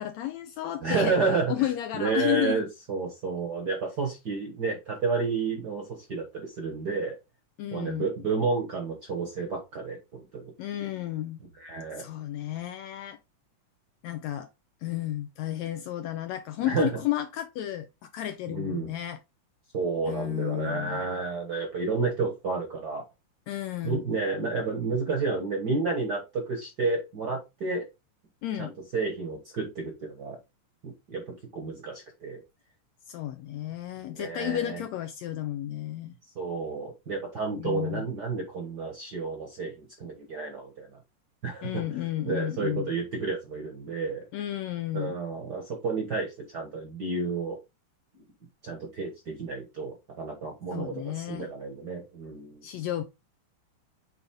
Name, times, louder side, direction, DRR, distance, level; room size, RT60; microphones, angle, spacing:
voice 1, 0.0-1.1 1.5-2.6 7.6-8.1 10.6-11.4 12.0-13.2 14.0-14.5 14.8-19.2 20.1-21.0 23.5-24.0 28.4-28.7 33.1-36.1 37.5-38.0 41.6-42.9 44.3-45.2 50.7-51.5 52.6-53.0, left 13 dB, 80° left, 1.6 m, -32 dB
voice 2, 0.8-1.5 1.9-7.2 7.7-10.4 11.6-12.0 16.6-16.9 18.5-18.9 19.7-23.0 23.8-27.8 28.6-30.4 30.8-32.4 34.1-34.8 36.3-41.0 41.4-44.3 44.9-47.6 48.6-52.6, right 4 dB, 50° right, 1.2 m, -31 dB
7.2 x 4.0 x 3.6 m
omnidirectional pair, 3.6 m